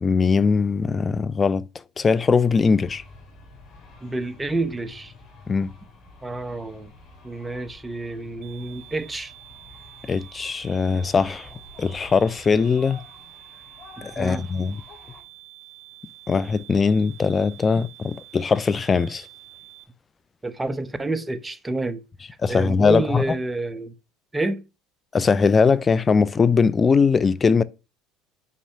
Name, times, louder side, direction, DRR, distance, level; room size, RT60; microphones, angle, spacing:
voice 1, 0.0-1.6 2.0-3.0 5.5-5.7 10.0-11.5 11.8-13.0 14.0-14.8 16.3-19.3 22.4-23.2 25.1-27.6, left 5 dB, 25° left, 0.5 m, -20 dB
sound 1, 1.9-15.2, left 3 dB, 55° left, 4.0 m, -48 dB
voice 2, 4.0-5.1 6.2-6.9 7.2-9.3 14.0-14.4 20.4-22.0 22.5-23.9 24.3-24.6, right 2 dB, 15° right, 0.9 m, -29 dB
sound 2, 8.4-19.8, right 17 dB, 50° right, 2.4 m, -47 dB
5.9 x 5.5 x 5.6 m
supercardioid pair, 95°, 0 cm